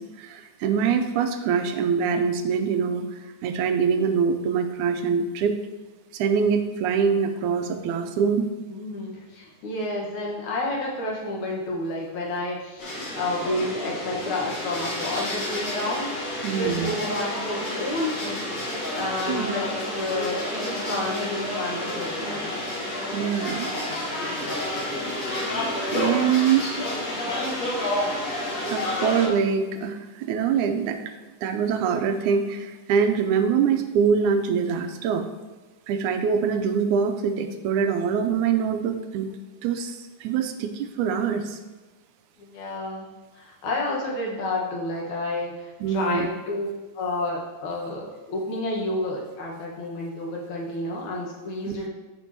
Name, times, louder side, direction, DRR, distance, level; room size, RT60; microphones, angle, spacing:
voice 1, 0.0-5.6 6.1-8.5 16.4-16.9 19.3-19.6 23.1-23.7 25.9-26.7 28.7-31.0 31.4-35.3 35.9-39.3 39.6-41.6 45.8-46.3 51.7-51.8, right 6 dB, 80° right, 6 dB, 2.0 m, -24 dB
voice 2, 8.7-19.7 20.0-22.5 42.4-43.1 43.3-46.7 46.9-51.9, left 2 dB, 70° left, -2 dB, 2.7 m, -30 dB
sound 1, 12.8-29.3, left 1 dB, 45° left, 2.5 m, -30 dB
13.5 x 5.2 x 2.9 m, 1.2 s
omnidirectional pair, 3.6 m